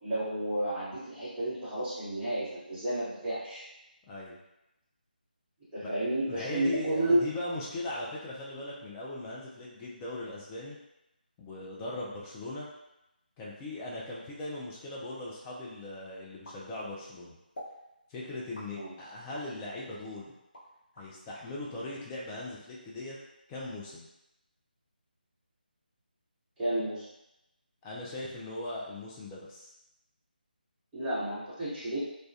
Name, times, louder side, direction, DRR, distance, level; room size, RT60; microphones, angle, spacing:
voice 1, 0.0-3.6 5.7-7.2 18.7-18.9 26.6-27.0 30.9-32.0, right 1 dB, 10° right, -15 dB, 0.9 m, -31 dB
voice 2, 4.1-4.4 5.8-5.9 6.3-10.8 11.4-12.7 13.4-17.4 18.1-20.3 20.9-23.2 23.5-24.1 27.8-29.7, left 2 dB, 10° left, -5 dB, 0.3 m, -39 dB
sound 1, 16.4-17.1 17.5-17.8 18.5-19.5 20.0-21.1, equal, 60° left, 0.8 m, -47 dB
2.2 x 2.1 x 2.6 m, 0.90 s
figure-of-eight pair, 155°, 5 cm